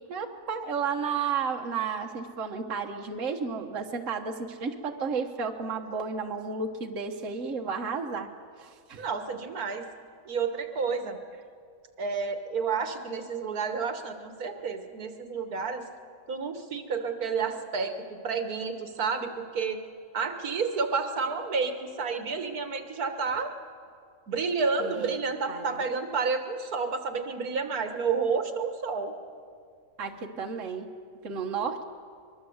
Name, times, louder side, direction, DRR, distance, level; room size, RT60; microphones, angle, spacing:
voice 1, 0.1-8.3 8.6-9.1 24.8-25.2 25.5-25.9 30.0-30.9 31.2-31.8, right 5 dB, 60° right, 3 dB, 1.6 m, -32 dB
voice 2, 9.0-9.9 10.3-11.2 12.0-15.9 16.3-19.8 20.1-23.5 24.3-29.2, right 5 dB, 85° right, 7 dB, 1.9 m, -30 dB
24.0 x 22.0 x 7.9 m, 2.2 s
omnidirectional pair, 1.5 m